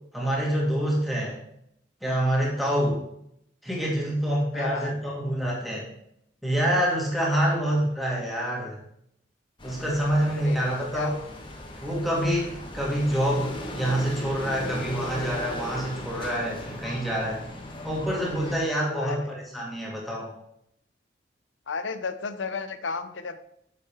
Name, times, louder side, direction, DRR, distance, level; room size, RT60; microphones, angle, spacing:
voice 1, 0.1-1.4 2.0-3.0 3.6-5.9 6.4-8.8 9.6-11.2 11.8-17.4 17.8-20.3, equal, ahead, -4 dB, 2.2 m, -26 dB
voice 2, 4.5-5.0 10.2-11.1 19.0-19.3 21.7-23.4, left 4 dB, 85° left, 10 dB, 0.7 m, -34 dB
sound 1, 9.6-18.6, left 1 dB, 25° left, 1.4 m, -37 dB
9.8 x 6.8 x 3.5 m, 0.73 s
head